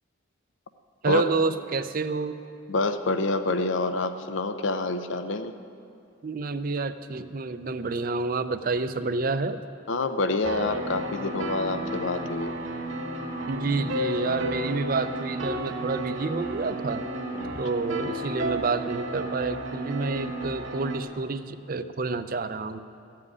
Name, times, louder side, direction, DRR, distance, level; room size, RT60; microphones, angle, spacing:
voice 1, 1.0-2.4 6.2-9.6 13.5-17.1 17.5-22.8, right 3 dB, 45° right, 10 dB, 0.5 m, -29 dB
voice 2, 2.7-5.5 9.9-12.5 17.3-17.5, left 3 dB, 70° left, 10 dB, 0.6 m, -27 dB
sound 1, 10.4-21.0, right 1 dB, 80° right, 1.8 m, -32 dB
14.0 x 7.6 x 9.6 m, 2.5 s
head